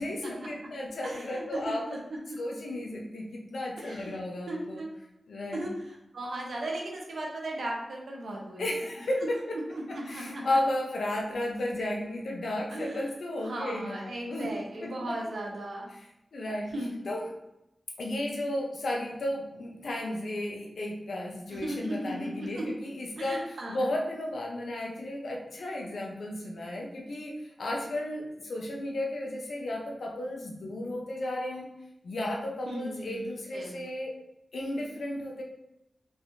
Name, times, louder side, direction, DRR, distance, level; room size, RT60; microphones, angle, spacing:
voice 1, 0.0-1.8 2.4-4.8 5.3-5.7 8.6-9.6 9.9-14.6 14.8-15.2 15.9-16.0 16.3-16.7 17.1-17.3 18.0-31.7 32.0-34.1 34.5-35.4, left 1 dB, 85° left, 0 dB, 0.8 m, -34 dB
voice 2, 1.0-2.0 2.3-2.4 3.8-4.2 4.5-4.9 5.5-8.7 9.7-10.4 12.7-13.0 13.4-15.9 16.7-16.9 21.5-22.6 23.2-23.8 32.7-33.8, right 1 dB, 75° right, -1 dB, 0.8 m, -37 dB
3.6 x 3.4 x 2.7 m, 0.87 s
wide cardioid pair, 130°, 0 cm